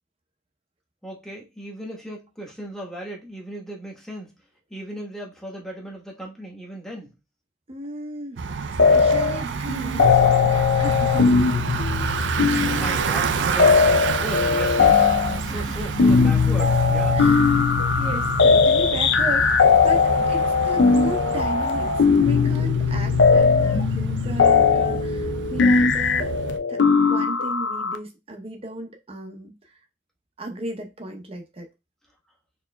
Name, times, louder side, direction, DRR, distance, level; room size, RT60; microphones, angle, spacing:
voice 1, 1.0-4.3 4.7-7.1 12.4-15.0 15.4-17.2, right 1 dB, 5° left, 1.1 m, -36 dB
voice 2, 7.7-8.4 8.9-10.1 10.4-11.7 15.5-15.8 17.1-26.4 26.7-29.7 30.4-31.7, right 1 dB, 30° right, 0.7 m, -35 dB
Bicycle, 8.4-26.6, right 5 dB, 70° right, 0.4 m, -29 dB
sound 1, 8.8-9.4 9.7-28.0, left 5 dB, 65° left, 0.5 m, -19 dB
4.4 x 3.0 x 2.2 m
head